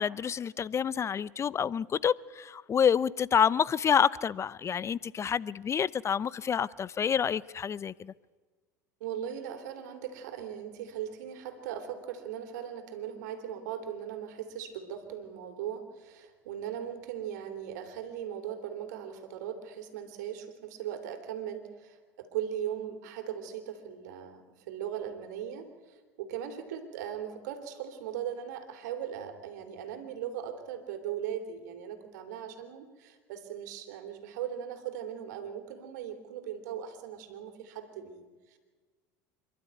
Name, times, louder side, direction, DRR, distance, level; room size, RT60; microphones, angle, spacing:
voice 1, 0.0-8.1, left 7 dB, 30° left, 0.5 m, -28 dB
voice 2, 9.0-38.6, right 9 dB, 75° right, 3.1 m, -39 dB
27.0 x 12.0 x 9.4 m
hypercardioid pair, 85°, 9 cm